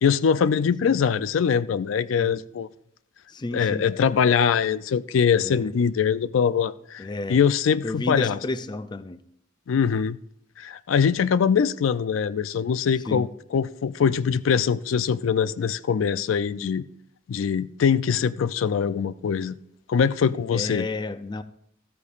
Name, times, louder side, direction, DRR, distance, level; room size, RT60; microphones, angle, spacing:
voice 1, 0.0-2.7 3.5-8.4 9.7-10.2 10.6-16.8 17.3-19.5 19.9-20.9, left 7 dB, 85° left, 0.4 m, -23 dB
voice 2, 0.6-1.0 2.1-2.4 3.3-3.9 5.4-5.7 7.0-7.4 7.8-9.2 13.1-13.3 20.5-21.4, left 2 dB, 25° left, 0.4 m, -32 dB
14.0 x 13.0 x 2.5 m
head